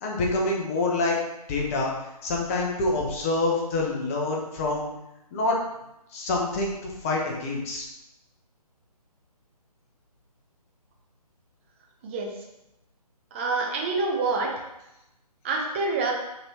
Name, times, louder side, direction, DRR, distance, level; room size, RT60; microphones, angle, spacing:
voice 1, 0.0-1.2 1.5-1.9 2.2-4.9 5.3-5.6 6.1-7.8, left 2 dB, 20° left, -1 dB, 0.7 m, -26 dB
voice 2, 12.0-12.5 13.3-14.5 15.4-16.1, right 3 dB, 20° right, 0 dB, 0.5 m, -27 dB
5.3 x 2.8 x 2.9 m, 0.89 s
figure-of-eight pair, 145°, 20 cm